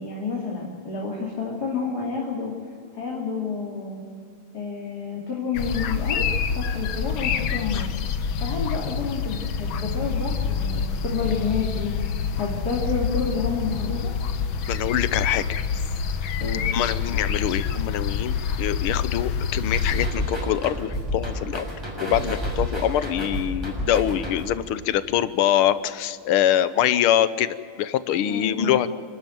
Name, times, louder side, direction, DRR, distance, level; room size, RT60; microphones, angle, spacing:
voice 1, 0.0-2.5 2.9-4.0 4.5-6.2 6.5-7.9 8.4-11.9 12.4-14.1 16.4-16.6 28.3-28.8, left 5 dB, 45° left, -3 dB, 3.4 m, -29 dB
sound 1, 5.5-20.1, left 6 dB, 70° left, 1.8 m, -27 dB
voice 2, 14.7-15.4 16.7-21.7 22.0-28.9, left 11 dB, 90° left, 14 dB, 1.7 m, -24 dB
sound 2, 19.7-24.7, left 1 dB, 10° right, 6.5 m, -30 dB
28.0 x 13.0 x 9.3 m, 2.2 s
omnidirectional pair, 2.3 m